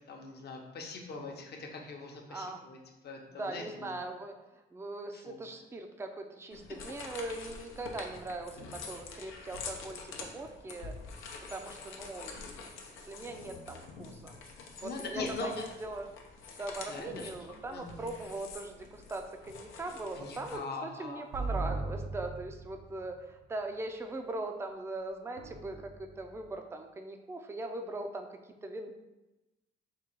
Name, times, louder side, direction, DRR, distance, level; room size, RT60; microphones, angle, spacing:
voice 1, 0.1-2.8 3.0-3.9 5.1-5.4 14.8-15.6 16.9-17.3 17.7-18.1 20.2-21.3, left 3 dB, 55° left, 2 dB, 0.8 m, -41 dB
voice 2, 2.3-2.7 3.3-4.4 4.7-10.9 11.5-14.4 14.8-16.1 16.5-28.9, right 2 dB, 15° right, 5 dB, 0.4 m, -40 dB
sound 1, 6.5-20.6, left 4 dB, 90° left, 0.6 m, -46 dB
sound 2, 21.3-23.1 25.4-26.3, right 3 dB, 75° right, 0.6 m, -37 dB
3.7 x 2.4 x 4.5 m, 1.0 s
cardioid pair, 90°, 20 cm